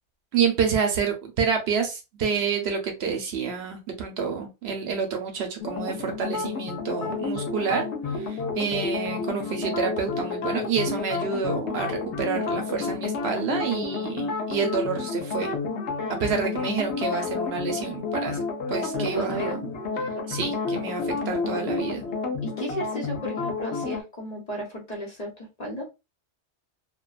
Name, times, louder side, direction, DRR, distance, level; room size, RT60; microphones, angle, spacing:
voice 1, 0.3-15.5 16.2-18.4 18.7-19.6 20.3-22.1, right 6 dB, 70° right, 4 dB, 0.8 m, -28 dB
sound 1, 5.6-24.0, left 4 dB, 75° left, 0.9 m, -30 dB
voice 2, 18.9-19.6 22.4-25.9, right 1 dB, 40° left, -1 dB, 0.9 m, -34 dB
2.6 x 2.2 x 2.3 m, 0.25 s
omnidirectional pair, 1.2 m